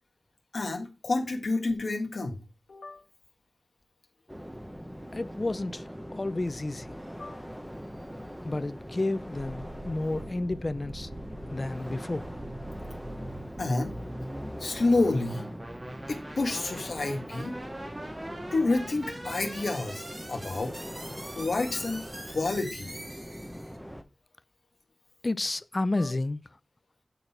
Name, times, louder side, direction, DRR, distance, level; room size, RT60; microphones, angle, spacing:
voice 1, 0.5-2.4 2.7-3.0 7.2-7.4 13.6-13.9 14.6-15.5 16.1-17.5 18.5-20.0 20.3-20.7 21.3-22.9 26.0-26.2, left 2 dB, 85° left, 1.7 m, -29 dB
sound 1, 4.3-24.0, equal, 5° right, 1.0 m, -42 dB
voice 2, 5.1-7.0 8.4-11.1 11.5-12.3 25.2-26.4, left 2 dB, 40° left, 0.4 m, -31 dB
sound 2, 9.5-23.8, right 1 dB, 30° right, 1.6 m, -43 dB
9.1 x 3.9 x 4.4 m
wide cardioid pair, 55°, 0 cm